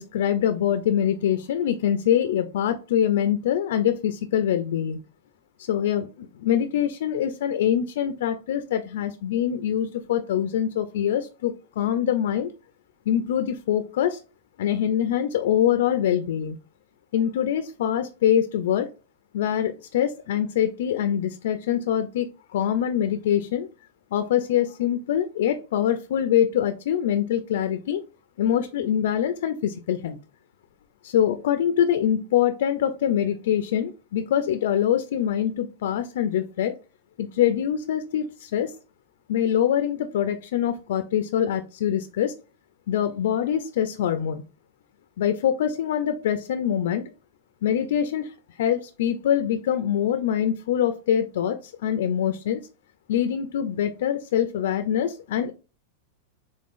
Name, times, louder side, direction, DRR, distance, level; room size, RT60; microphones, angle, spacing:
voice 1, 0.0-5.0 5.6-12.5 13.1-14.2 14.6-16.6 17.1-18.9 19.3-23.7 24.1-28.0 28.4-30.2 31.0-36.8 37.2-38.8 39.3-42.3 42.9-44.4 45.2-47.0 47.6-52.6 53.1-55.5, left 10 dB, 75° left, 10 dB, 0.3 m, -24 dB
3.5 x 2.5 x 3.6 m, 0.34 s
supercardioid pair, 160°, 0 cm